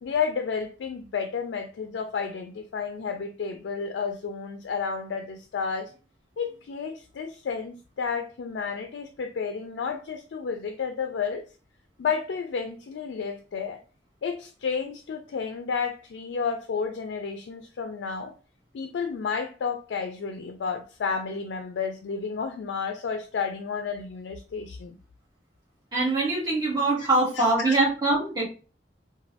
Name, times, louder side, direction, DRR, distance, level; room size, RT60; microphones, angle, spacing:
voice 1, 0.0-5.9 6.4-11.5 12.0-13.8 14.2-18.3 18.7-25.0 27.0-27.1 27.4-27.7, left 5 dB, 80° left, 0.4 m, -31 dB
voice 2, 25.9-28.4, right 2 dB, 25° right, 1.4 m, -23 dB
3.0 x 2.3 x 2.7 m
head